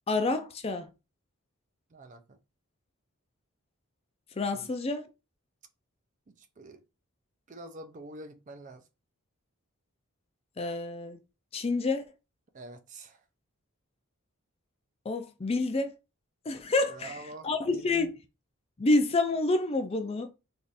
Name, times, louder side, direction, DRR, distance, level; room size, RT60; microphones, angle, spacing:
voice 1, 0.1-0.9 4.4-5.1 10.6-11.2 11.5-12.0 15.1-16.0 16.5-18.1 18.8-20.3, left 3 dB, 25° left, 0.4 m, -28 dB
voice 2, 1.9-2.4 4.5-4.7 6.4-6.8 7.5-8.8 12.5-13.2 16.9-18.1, right 2 dB, 35° right, 0.4 m, -46 dB
3.4 x 2.5 x 4.0 m
head